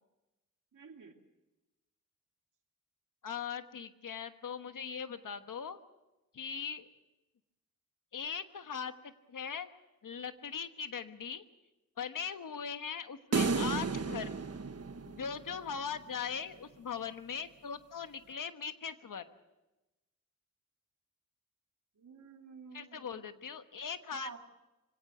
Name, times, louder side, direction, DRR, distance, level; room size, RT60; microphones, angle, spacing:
voice 1, 0.7-1.2 22.0-23.3 24.1-24.4, right 5 dB, 75° right, 4 dB, 2.7 m, -50 dB
voice 2, 3.2-5.8 6.3-6.8 8.1-9.7 10.0-11.4 12.0-14.3 15.1-19.2 22.7-24.4, left 7 dB, 90° left, 9 dB, 1.3 m, -40 dB
sound 1, 13.3-15.7, right 4 dB, 50° right, 1.3 m, -33 dB
25.0 x 17.0 x 8.0 m, 1.0 s
wide cardioid pair, 80°, 31 cm